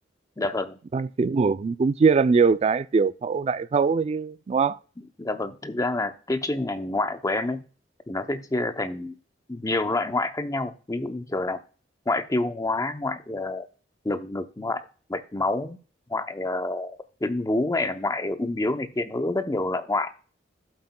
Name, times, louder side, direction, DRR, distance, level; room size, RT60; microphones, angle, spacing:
voice 1, 0.4-0.8 5.2-7.6 8.1-9.1 9.5-11.6 12.1-13.7 14.0-14.8 15.1-15.8 16.1-20.1, left 2 dB, 20° left, 0.6 m, -27 dB
voice 2, 0.9-4.8, right 5 dB, 35° right, 0.3 m, -22 dB
12.5 x 7.9 x 2.2 m
head